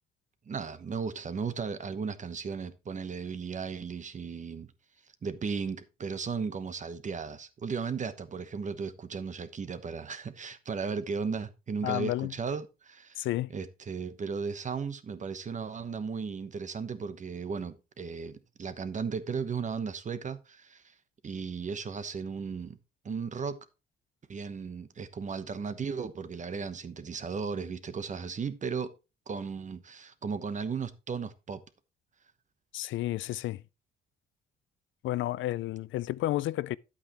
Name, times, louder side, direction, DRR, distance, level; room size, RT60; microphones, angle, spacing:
voice 1, 0.5-4.7 5.2-20.9 21.2-22.8 23.0-23.6 24.3-28.9 29.3-31.6, right 5 dB, 40° right, 1.0 m, -36 dB
voice 2, 11.8-12.3 13.2-13.5 32.7-33.6 35.0-36.8, left 15 dB, 75° left, 0.4 m, -31 dB
10.0 x 8.4 x 3.0 m
cardioid pair, 90°, 20 cm